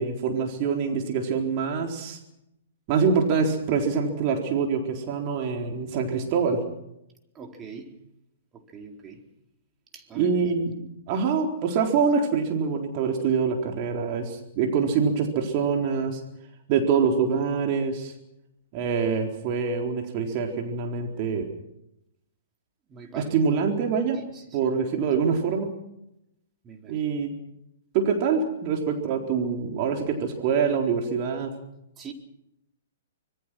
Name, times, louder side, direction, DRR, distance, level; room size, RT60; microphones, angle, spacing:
voice 1, 0.0-2.2 2.9-6.6 10.2-16.2 16.7-18.1 18.7-21.5 23.1-24.2 24.5-25.7 26.9-27.3 27.9-31.5, right 5 dB, 40° right, 3 dB, 4.1 m, -25 dB
voice 2, 7.3-8.0 8.5-9.3 9.9-10.3 22.9-23.4 24.1-24.6 26.6-27.2 32.0-32.1, right 5 dB, 20° right, 3 dB, 4.1 m, -43 dB
25.5 x 22.0 x 6.3 m, 0.83 s
figure-of-eight pair, 120°, 0 cm